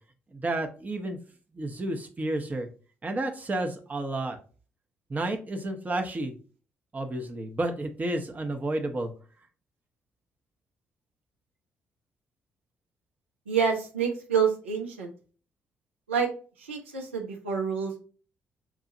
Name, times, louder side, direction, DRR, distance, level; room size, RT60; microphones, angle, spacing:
voice 1, 0.3-1.2 1.5-2.7 3.0-4.4 5.1-6.4 6.9-9.1, right 2 dB, 25° right, 4 dB, 0.7 m, -31 dB
voice 2, 13.5-15.1 16.1-16.3 16.6-18.0, right 6 dB, 80° right, 1 dB, 0.5 m, -27 dB
5.9 x 2.4 x 2.7 m, 0.39 s
figure-of-eight pair, 40°, 7 cm